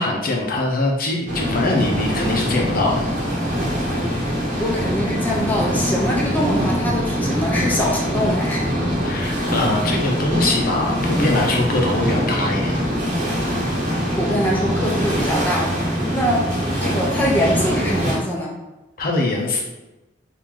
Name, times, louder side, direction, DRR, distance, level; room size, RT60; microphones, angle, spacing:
voice 1, 0.0-3.1 9.0-12.8 19.0-19.6, left 2 dB, 55° left, -1 dB, 0.7 m, -22 dB
sound 1, 1.3-18.2, equal, 50° right, 0.9 m, -23 dB
voice 2, 4.6-8.7 14.1-16.5 16.8-18.5, equal, 10° left, -4 dB, 0.5 m, -23 dB
3.0 x 2.6 x 3.6 m, 1.0 s
head